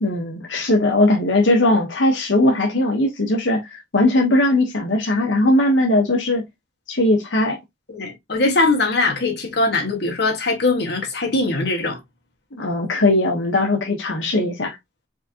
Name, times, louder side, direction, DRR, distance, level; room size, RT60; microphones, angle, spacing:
voice 1, 0.0-3.6 3.9-6.4 6.9-7.6 12.5-14.7, left 1 dB, 90° left, 1.2 m, -19 dB
voice 2, 7.9-12.0, left 2 dB, 60° left, 1.7 m, -21 dB
4.8 x 3.8 x 2.9 m
head